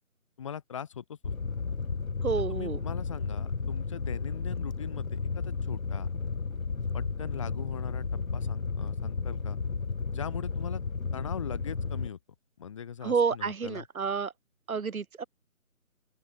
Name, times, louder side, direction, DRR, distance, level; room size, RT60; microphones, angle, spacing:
voice 1, 0.4-1.3 2.4-6.1 6.9-9.6 10.1-10.8 11.1-12.2 12.6-13.9, left 8 dB, 20° left, 2.8 m, -40 dB
Fire, 1.2-12.1, left 4 dB, 70° left, 3.2 m, -33 dB
voice 2, 2.2-2.8 13.0-14.3 14.7-15.2, right 5 dB, 75° right, 1.6 m, -29 dB
open air
hypercardioid pair, 175°, 42 cm